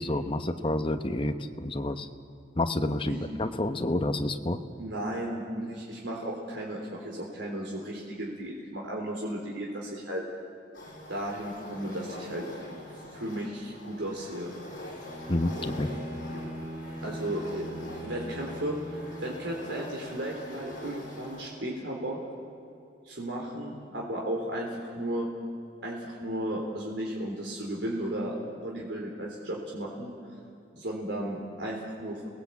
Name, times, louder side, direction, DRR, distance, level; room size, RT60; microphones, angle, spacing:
voice 1, 0.0-2.1 2.6-4.6 15.3-15.9, left 1 dB, 30° left, 7 dB, 1.1 m, -29 dB
voice 2, 3.1-3.4 4.8-10.2 11.1-12.8 13.1-14.5 17.0-22.2 23.1-25.3 25.8-30.1 30.7-32.3, right 1 dB, 80° right, -2 dB, 3.7 m, -35 dB
sound 1, 10.7-21.5, left 1 dB, 50° left, 7.9 m, -44 dB
Bowed string instrument, 15.0-19.8, equal, 10° right, 3.9 m, -40 dB
29.5 x 19.5 x 8.5 m, 2.5 s
head